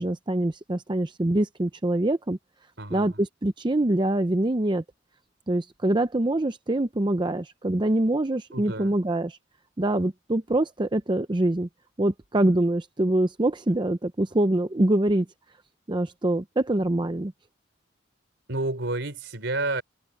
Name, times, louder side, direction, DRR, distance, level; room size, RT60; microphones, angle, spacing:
voice 1, 0.0-2.4 2.9-4.8 5.5-9.4 9.8-11.7 12.0-15.3 15.9-17.3, right 1 dB, 25° right, 0.7 m, -24 dB
voice 2, 2.8-3.2 8.5-8.9 18.5-19.8, right 2 dB, 65° right, 4.4 m, -30 dB
head